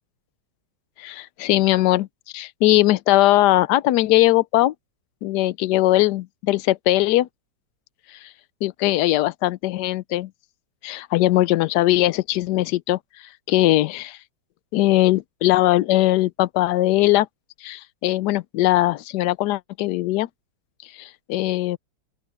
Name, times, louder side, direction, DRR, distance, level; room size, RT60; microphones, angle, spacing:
voice 1, 1.0-2.1 2.3-4.7 5.2-7.3 8.1-8.3 8.6-10.3 10.8-13.0 13.5-14.2 14.7-17.3 17.6-20.3 21.3-21.8, left 16 dB, 75° left, 1.0 m, -20 dB
open air
omnidirectional pair, 2.2 m